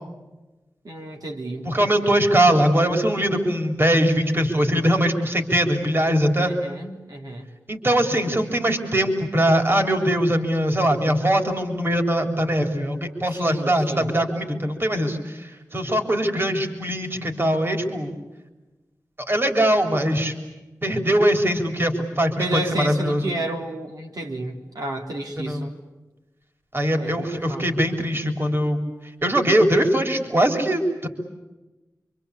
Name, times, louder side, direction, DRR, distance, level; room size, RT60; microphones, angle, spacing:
voice 1, 0.8-1.7 6.4-7.5 13.3-14.1 22.4-25.7 27.0-27.8, right 1 dB, 75° right, 0 dB, 3.4 m, -31 dB
voice 2, 1.6-6.5 7.7-18.2 19.3-20.3 20.8-23.3 25.4-25.6 26.7-28.8 29.2-31.1, right 1 dB, 35° right, 4 dB, 3.7 m, -21 dB
28.0 x 25.0 x 8.4 m, 1.1 s
wide cardioid pair, 90°, 7 cm